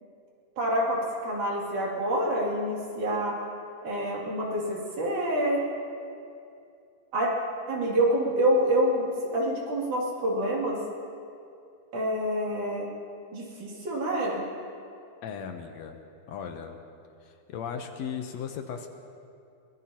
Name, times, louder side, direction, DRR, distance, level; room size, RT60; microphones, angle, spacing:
voice 1, 0.6-3.3 3.8-5.6 7.1-7.3 7.7-9.1 9.3-10.8 11.9-12.9 13.3-14.4, right 1 dB, 85° right, -4 dB, 4.3 m, -27 dB
voice 2, 15.2-16.0 16.3-16.8 17.2-18.9, left 7 dB, 70° left, 5 dB, 2.0 m, -37 dB
23.0 x 20.5 x 2.9 m, 2.5 s
omnidirectional pair, 3.4 m